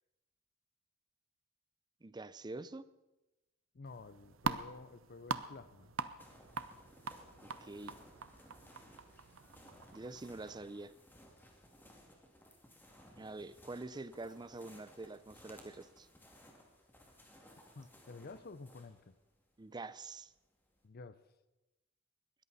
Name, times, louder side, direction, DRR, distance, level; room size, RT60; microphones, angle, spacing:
voice 1, 2.0-2.8 7.4-8.0 9.9-10.9 13.2-16.1 19.6-20.3, right 2 dB, 20° right, 15 dB, 0.5 m, -46 dB
voice 2, 3.7-5.9 17.8-19.2 20.8-21.2, left 3 dB, 50° left, 14 dB, 0.6 m, -51 dB
sound 1, 3.8-10.6, right 5 dB, 80° right, 0.8 m, -43 dB
sound 2, 6.2-20.9, equal, 10° left, 2.4 m, -60 dB
20.5 x 14.0 x 4.1 m, 1.0 s
head